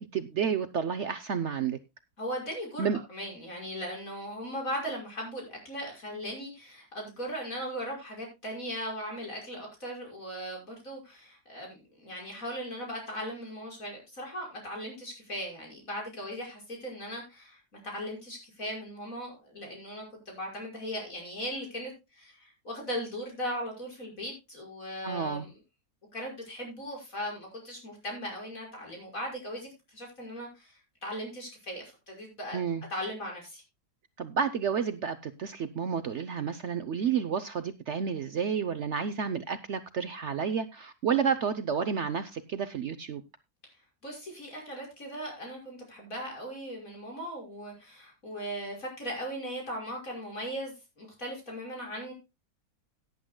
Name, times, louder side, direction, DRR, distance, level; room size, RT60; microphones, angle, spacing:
voice 1, 0.0-1.8 2.8-3.0 25.0-25.5 32.5-32.8 34.2-43.2, right 7 dB, 55° right, 0.9 m, -30 dB
voice 2, 2.2-25.5 26.1-32.6 32.9-33.6 44.0-52.1, equal, 55° left, 6.1 m, -38 dB
17.5 x 10.5 x 2.2 m
omnidirectional pair, 1.7 m